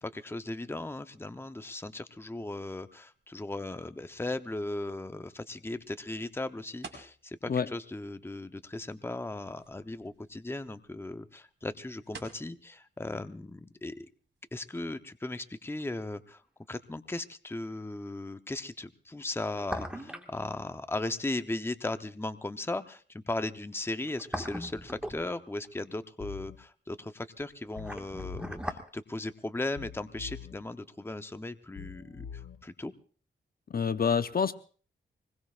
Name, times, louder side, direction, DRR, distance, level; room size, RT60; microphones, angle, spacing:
voice 1, 0.0-14.1 14.5-16.4 16.7-32.9, left 2 dB, 10° left, 9 dB, 0.8 m, -37 dB
sound 1, 2.7-16.0, right 4 dB, 65° right, 4.8 m, -56 dB
sound 2, 16.2-16.3 19.3-20.4 20.6-20.7 23.9-25.7 27.4-28.9 29.2-29.3, equal, 5° right, 1.7 m, -39 dB
sound 3, 26.2-26.6 27.8-28.6 29.8-30.6 31.8-32.6, left 6 dB, 90° left, 1.7 m, -44 dB
voice 2, 33.7-34.5, left 6 dB, 50° left, 11 dB, 0.7 m, -27 dB
24.5 x 21.0 x 2.5 m, 0.41 s
cardioid pair, 80°, 20 cm